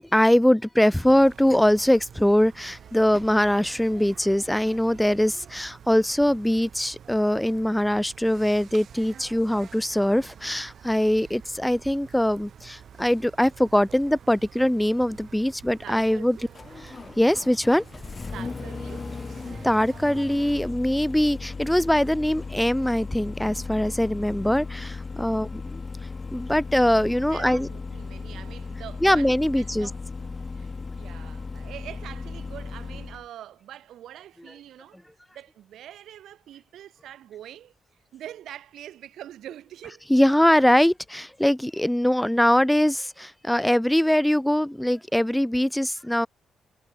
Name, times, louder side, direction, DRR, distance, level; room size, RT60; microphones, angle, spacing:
voice 1, 0.0-16.4 17.2-17.8 19.6-25.8 26.3-27.7 29.0-29.9 40.1-46.3, left 1 dB, 5° left, 1.5 m, -22 dB
sound 1, 0.9-20.7, right 8 dB, 60° right, 6.9 m, -48 dB
Engine starting, 14.9-33.3, left 4 dB, 30° left, 2.5 m, -37 dB
voice 2, 15.8-16.5 18.3-19.1 25.3-25.6 27.3-35.0 35.3-37.7 38.1-40.1, right 11 dB, 80° right, 5.6 m, -44 dB
cardioid pair, 105°, 0 cm